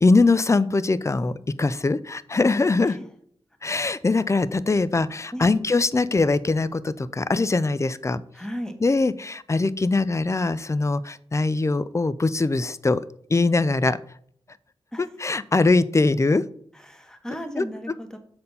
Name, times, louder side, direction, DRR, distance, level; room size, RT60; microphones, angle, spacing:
voice 1, 0.0-3.0 3.6-8.2 8.8-13.0 13.3-14.0 15.0-16.4 17.5-17.7, left 3 dB, 30° left, 16 dB, 0.4 m, -22 dB
voice 2, 8.3-8.7 14.9-15.0 16.8-18.2, equal, 5° left, 6 dB, 1.2 m, -35 dB
6.8 x 4.3 x 5.4 m, 0.65 s
wide cardioid pair, 80°, 11 cm